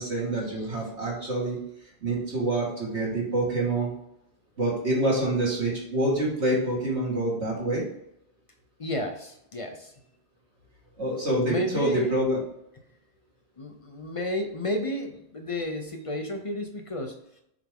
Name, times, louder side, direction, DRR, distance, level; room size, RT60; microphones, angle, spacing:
voice 1, 0.0-1.6 2.0-3.9 4.6-7.9 11.0-12.4, right 1 dB, 60° right, -5 dB, 2.2 m, -26 dB
voice 2, 8.8-9.9 11.4-12.2 13.6-17.2, left 1 dB, 35° left, 5 dB, 0.6 m, -32 dB
8.5 x 3.5 x 3.6 m, 0.77 s
omnidirectional pair, 1.2 m